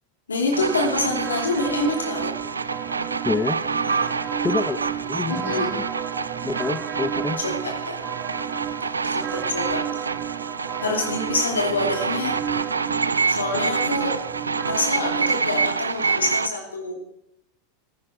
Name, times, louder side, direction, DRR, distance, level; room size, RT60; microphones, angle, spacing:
voice 1, 0.3-2.3 5.3-5.7 7.4-7.6 7.8-8.0 9.0-9.8 10.8-12.4 13.3-14.2 14.7-17.0, left 3 dB, 85° left, 2 dB, 2.8 m, -26 dB
sound 1, 0.5-16.5, right 4 dB, 90° right, 0.4 m, -27 dB
sound 2, 0.6-16.5, right 10 dB, 35° right, 0.6 m, -32 dB
voice 2, 3.2-3.6 4.4-5.8 6.4-7.4, left 4 dB, 15° left, 11 dB, 0.7 m, -27 dB
16.0 x 10.0 x 4.4 m, 0.76 s
hypercardioid pair, 90°, 0 cm